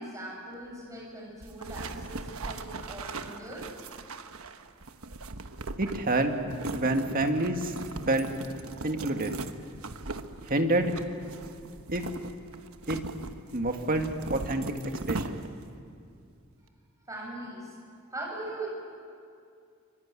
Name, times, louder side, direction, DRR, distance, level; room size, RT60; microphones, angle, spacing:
voice 1, 0.0-3.7 17.1-17.8 18.1-18.7, right 2 dB, 15° right, -2 dB, 7.6 m, -40 dB
sound 1, 1.4-15.7, right 3 dB, 85° right, 1.2 m, -39 dB
voice 2, 5.8-6.3 6.7-7.7 8.1-8.3 8.8-9.3 10.5-10.9 11.9-12.0 12.9-13.0 13.5-14.7 15.1-15.4, right 2 dB, 45° right, 5 dB, 1.9 m, -27 dB
25.0 x 23.0 x 9.7 m, 2.4 s
head